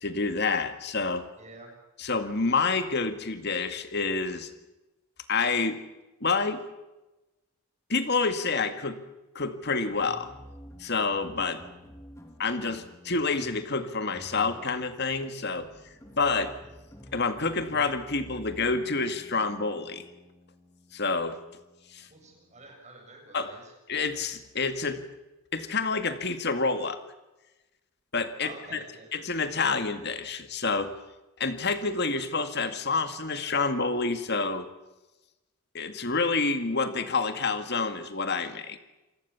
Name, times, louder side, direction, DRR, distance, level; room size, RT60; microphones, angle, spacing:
voice 1, 0.0-1.3 2.0-4.5 5.3-5.8 6.2-6.6 7.9-9.0 9.4-10.3 10.8-11.6 12.4-15.7 16.2-16.5 17.1-20.1 20.9-21.4 21.9-22.1 23.3-23.5 23.9-25.0 25.5-27.0 28.1-28.8 29.1-30.9 31.4-34.7 35.7-38.8, left 4 dB, 50° left, 9 dB, 2.1 m, -28 dB
voice 2, 1.4-1.7 2.0-2.1 22.1-23.7 28.4-29.1, right 2 dB, 30° right, 2 dB, 7.6 m, -48 dB
sound 1, 9.9-22.7, equal, 15° left, 3.2 m, -50 dB
28.0 x 19.5 x 7.2 m, 1.0 s
head